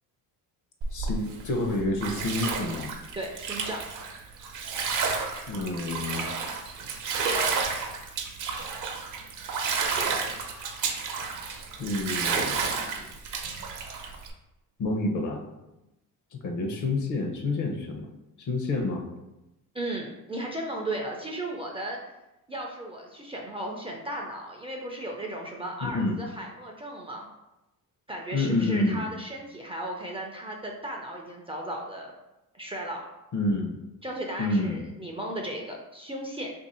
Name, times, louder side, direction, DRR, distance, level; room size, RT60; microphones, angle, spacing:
Bathtub (filling or washing), 0.8-14.3, right 5 dB, 55° right, 0.6 m, -31 dB
voice 1, 0.9-2.9 5.5-6.3 11.8-12.7 14.8-15.5 16.3-18.1 18.4-19.0 25.8-26.2 28.3-29.1 33.3-33.8 34.4-34.8, left 2 dB, 55° left, 3 dB, 0.7 m, -28 dB
voice 2, 3.1-3.8 19.7-22.0 22.5-27.3 28.1-32.1 32.5-33.1 34.0-36.5, right 1 dB, 15° right, 0 dB, 0.3 m, -35 dB
2.9 x 2.6 x 4.1 m, 0.96 s
cardioid pair, 120°, 36 cm